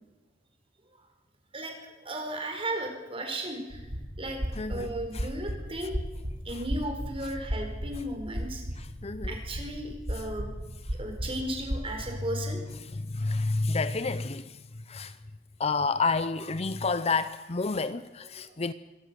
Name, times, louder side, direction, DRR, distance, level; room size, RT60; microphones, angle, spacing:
voice 1, 1.5-3.9 4.2-4.4 4.7-6.0 6.4-8.6 9.2-10.5 11.0-12.6 18.4-18.6, right 1 dB, 30° right, 4.6 m, -35 dB
sound 1, 3.7-11.8, equal, 75° right, 3.2 m, -35 dB
voice 2, 4.6-5.3 8.8-9.3 12.8-15.1 15.6-18.7, left 4 dB, 35° left, 0.6 m, -30 dB
24.0 x 17.5 x 6.9 m
head